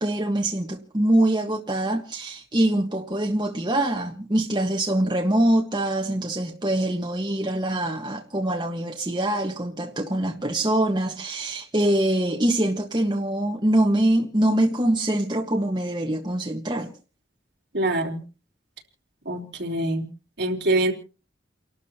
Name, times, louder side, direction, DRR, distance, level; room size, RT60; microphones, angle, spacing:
voice 1, 0.0-16.9, right 1 dB, 25° right, 1.4 m, -24 dB
voice 2, 17.7-18.2 19.2-20.1 20.4-20.9, right 1 dB, 65° right, 3.3 m, -24 dB
30.0 x 12.5 x 2.9 m
head